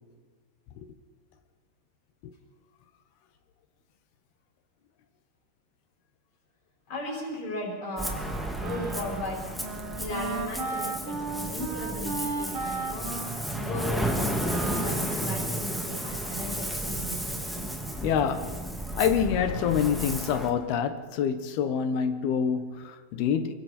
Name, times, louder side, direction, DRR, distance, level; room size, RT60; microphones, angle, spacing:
voice 1, 6.9-8.4 8.6-9.5 9.9-13.2 13.6-17.7, left 1 dB, 35° left, 5.8 m, -36 dB
Ocean, 8.0-20.5, right 1 dB, ahead, 0.9 m, -33 dB
Wind instrument woodwind instrument, 8.1-15.4, right 4 dB, 85° right, 1.1 m, -36 dB
voice 2, 18.0-18.6 19.0-23.5, left 7 dB, 75° left, 3.0 m, -26 dB
28.5 x 24.0 x 4.4 m
omnidirectional pair, 4.7 m